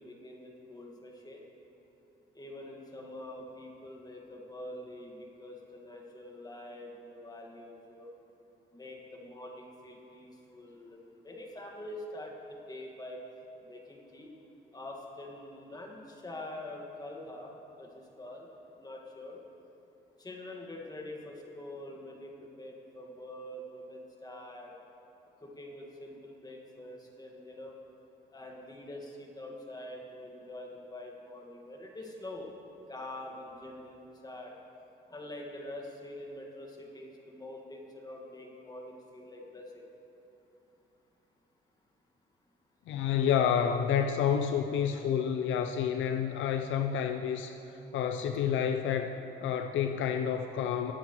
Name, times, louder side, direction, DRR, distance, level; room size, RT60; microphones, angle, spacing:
voice 1, 0.0-1.4 2.3-8.1 8.7-13.2 13.6-14.3 14.7-18.5 18.8-19.4 20.2-24.8 25.4-27.8 28.3-32.5 32.9-34.6 35.1-39.9, left 1 dB, 20° left, 0 dB, 1.7 m, -45 dB
voice 2, 42.9-47.5 47.9-50.9, left 8 dB, 75° left, 6 dB, 0.5 m, -29 dB
19.0 x 7.4 x 3.1 m, 2.9 s
cardioid pair, 90°, 20 cm